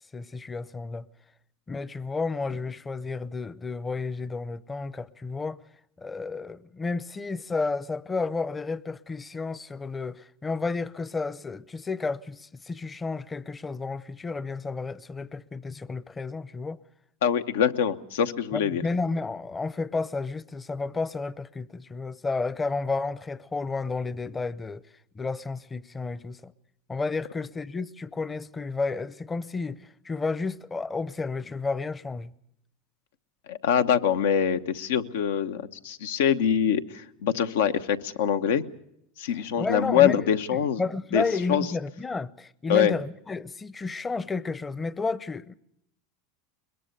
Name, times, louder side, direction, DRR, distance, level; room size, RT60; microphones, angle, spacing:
voice 1, 0.1-1.1 1.7-5.6 6.0-16.8 18.5-24.8 25.1-26.5 26.9-32.3 39.6-45.5, left 3 dB, 20° left, 0.7 m, -31 dB
voice 2, 17.2-18.8 33.5-38.6 39.2-40.8 41.1-41.2 41.5-41.6 42.7-42.9, left 8 dB, 85° left, 1.0 m, -24 dB
22.0 x 22.0 x 6.7 m
hypercardioid pair, 105°, 0 cm